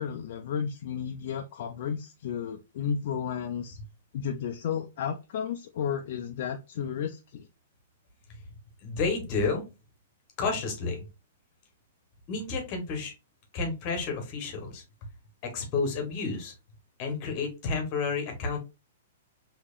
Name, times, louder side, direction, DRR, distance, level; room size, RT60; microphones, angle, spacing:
voice 1, 0.0-3.8 4.1-7.5, left 7 dB, 40° left, 4 dB, 0.4 m, -33 dB
voice 2, 8.8-9.6 10.4-11.1 12.3-13.1 13.5-14.8 15.4-16.5 17.0-18.6, left 4 dB, 25° left, 4 dB, 1.0 m, -30 dB
4.6 x 2.9 x 2.4 m, 0.27 s
hypercardioid pair, 180°, 0 cm